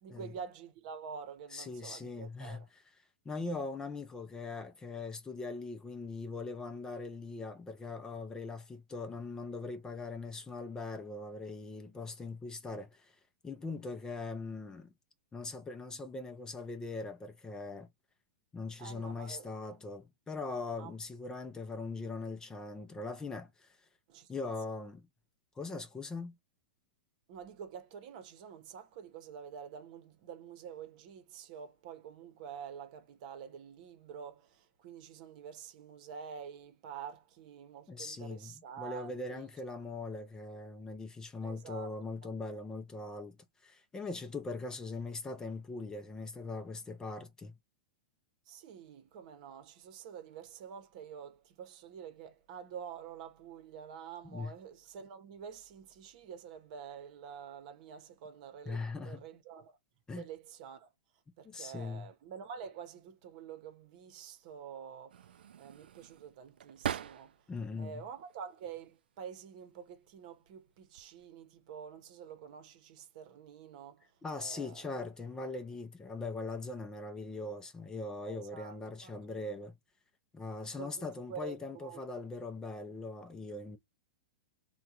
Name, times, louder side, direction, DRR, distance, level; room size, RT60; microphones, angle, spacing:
voice 1, 0.0-2.7 18.8-19.5 20.8-20.9 24.1-24.3 27.3-39.4 41.4-41.9 42.2-42.3 48.5-59.8 60.1-60.9 61.4-67.5 67.8-74.1 74.4-74.9 78.2-78.8 79.0-79.2 80.7-81.0 81.3-82.0, right 7 dB, 55° right, 0.9 m, -48 dB
voice 2, 1.5-2.6 3.2-14.9 15.3-17.9 18.5-23.8 24.3-25.1 25.6-26.3 37.9-43.4 43.6-47.5 54.3-54.5 58.7-59.2 60.1-60.3 61.4-62.1 67.5-68.0 74.2-79.8 80.3-83.8, left 3 dB, 15° left, 0.5 m, -41 dB
sound 1, 65.1-67.6 68.0-68.9 69.8-70.1 70.5-71.3, right 9 dB, 85° right, 0.3 m, -42 dB
3.6 x 2.3 x 2.8 m
hypercardioid pair, 135°, 5 cm